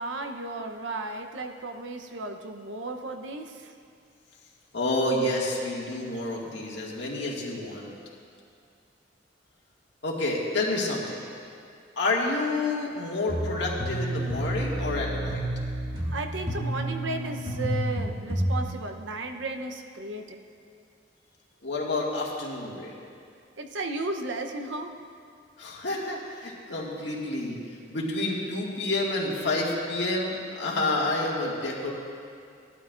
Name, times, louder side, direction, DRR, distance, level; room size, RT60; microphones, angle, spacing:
voice 1, 0.0-3.7 16.1-20.4 23.6-24.9, right 2 dB, 75° right, 5 dB, 0.8 m, -34 dB
voice 2, 4.7-7.9 10.0-11.2 12.0-15.7 21.6-22.9 25.6-27.6 27.9-31.9, left 2 dB, 70° left, -3 dB, 1.9 m, -29 dB
sound 1, 13.3-18.6, equal, 30° right, 2.1 m, -30 dB
17.0 x 12.0 x 2.5 m, 2.3 s
head